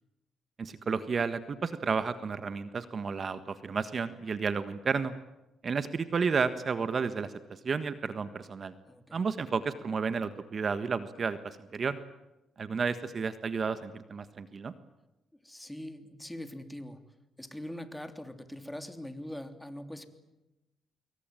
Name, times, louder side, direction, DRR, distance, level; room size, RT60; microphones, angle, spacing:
voice 1, 0.6-5.1 5.6-8.7 9.1-12.0 12.6-14.7, right 5 dB, 40° right, 11 dB, 1.5 m, -32 dB
voice 2, 8.9-9.2 15.3-17.0 17.4-20.1, left 1 dB, 5° left, 8 dB, 3.3 m, -42 dB
26.5 x 23.5 x 9.2 m, 0.97 s
cardioid pair, 90°, 0 cm